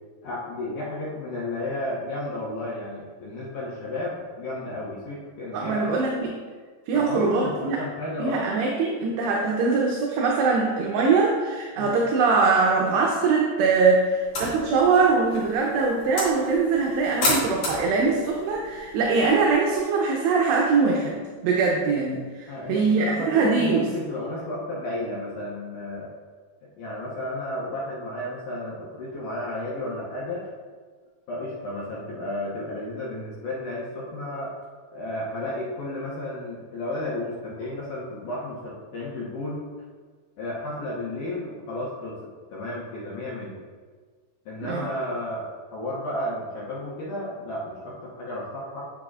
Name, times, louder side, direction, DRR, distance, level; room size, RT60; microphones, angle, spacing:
voice 1, 0.2-5.9 6.9-8.5 11.8-12.0 22.5-26.1 26.8-30.5 31.3-34.5 34.9-39.6 40.4-42.2 42.5-43.6 44.5-45.5 45.7-48.8, left 1 dB, 75° left, -6 dB, 1.9 m, -32 dB
voice 2, 5.5-6.4 6.9-7.8 8.2-23.9 44.6-44.9, right 4 dB, 80° right, -1 dB, 2.7 m, -22 dB
sound 1, 14.2-19.8, left 1 dB, 50° left, 3.0 m, -32 dB
8.8 x 7.5 x 2.4 m, 1.5 s
omnidirectional pair, 5.3 m